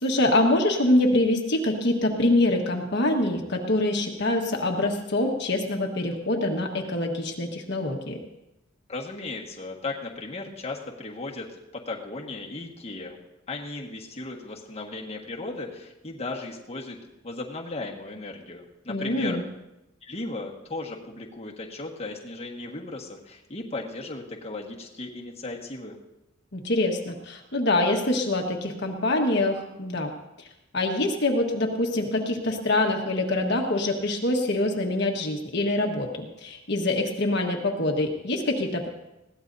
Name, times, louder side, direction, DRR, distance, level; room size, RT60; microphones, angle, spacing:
voice 1, 0.0-8.2 18.9-19.4 26.5-30.1 30.4-30.5 30.7-38.9, left 1 dB, 55° left, 1 dB, 1.5 m, -25 dB
voice 2, 8.9-11.5 11.7-13.2 13.5-17.0 17.2-19.4 20.0-26.0, left 2 dB, 30° left, -2 dB, 1.6 m, -36 dB
21.0 x 16.5 x 2.7 m, 0.92 s
head